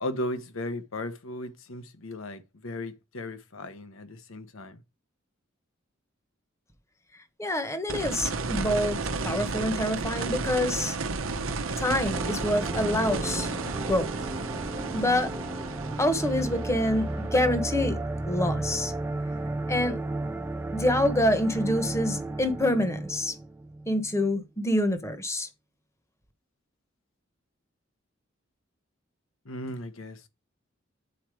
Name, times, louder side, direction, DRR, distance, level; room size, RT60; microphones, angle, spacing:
voice 1, 0.0-4.8 29.5-30.3, left 1 dB, 85° left, 1.0 m, -36 dB
voice 2, 7.4-9.0 9.2-11.0 11.8-13.5 13.9-14.1 14.9-15.3 16.0-18.0 18.3-18.9 19.7-20.0 20.7-23.3 23.9-25.5, left 1 dB, 15° left, 1.0 m, -26 dB
sound 1, 7.9-18.8 21.1-21.2, right 3 dB, 90° right, 0.9 m, -33 dB
sound 2, 12.1-24.0, right 2 dB, 10° right, 0.4 m, -33 dB
8.3 x 4.5 x 4.8 m
head